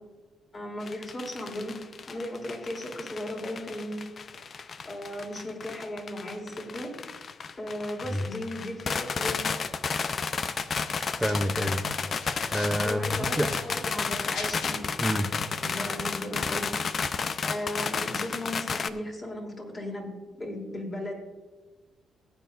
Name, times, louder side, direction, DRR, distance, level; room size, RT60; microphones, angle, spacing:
voice 1, 0.5-1.7 2.1-4.0 4.8-6.9 7.6-9.5 12.8-14.8 15.6-16.8 17.4-20.1 20.4-21.1, left 1 dB, 30° left, -1 dB, 3.2 m, -36 dB
sound 1, 0.8-18.9, left 5 dB, 45° left, 0.6 m, -32 dB
sound 2, 10.7-11.7 12.0-12.8 13.2-14.7, left 5 dB, 80° left, 1.4 m, -42 dB
voice 2, 11.2-11.8 12.5-13.5 15.0-15.3, equal, 5° right, 4 dB, 0.7 m, -28 dB
18.0 x 9.1 x 2.6 m, 1.2 s
cardioid pair, 90°, 0 cm